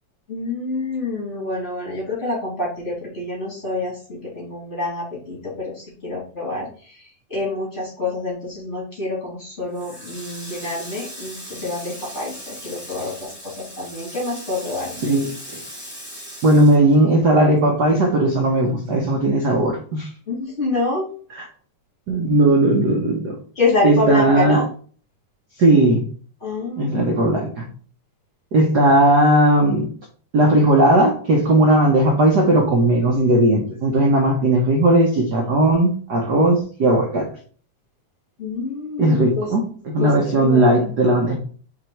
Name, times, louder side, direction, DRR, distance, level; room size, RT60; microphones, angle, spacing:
voice 1, 0.3-15.3 20.3-21.1 23.6-24.7 26.4-27.2 38.4-39.5 40.0-41.0, left 3 dB, 25° left, -4 dB, 3.0 m, -27 dB
Water tap faucet, 9.7-17.6 17.9-19.2, equal, 10° left, 2.6 m, -38 dB
voice 2, 16.4-20.1 22.1-23.4 23.8-24.6 25.6-26.0 26.8-27.7 28.5-29.9 30.3-37.3 39.0-39.7 39.9-41.3, right 1 dB, 60° right, 0 dB, 1.1 m, -17 dB
5.0 x 4.6 x 4.5 m, 0.43 s
omnidirectional pair, 3.4 m